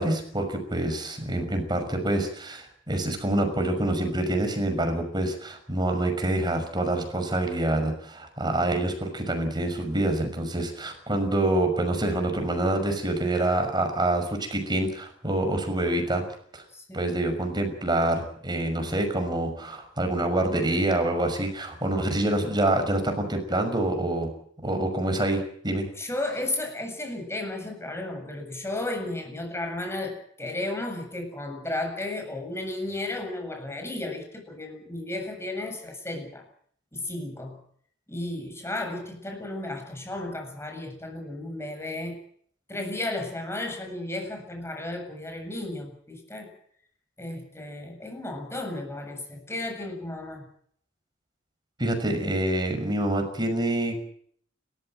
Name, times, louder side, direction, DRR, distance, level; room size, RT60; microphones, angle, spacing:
voice 1, 0.0-16.2 16.5-16.6 16.9-24.3 24.6-25.9 51.8-54.0, right 1 dB, 20° right, 6 dB, 6.0 m, -26 dB
voice 2, 16.7-17.2 26.0-36.4 36.9-37.6 38.1-42.2 42.7-46.5 47.2-50.5, left 2 dB, 15° left, 4 dB, 7.6 m, -34 dB
30.0 x 14.5 x 7.9 m, 0.63 s
head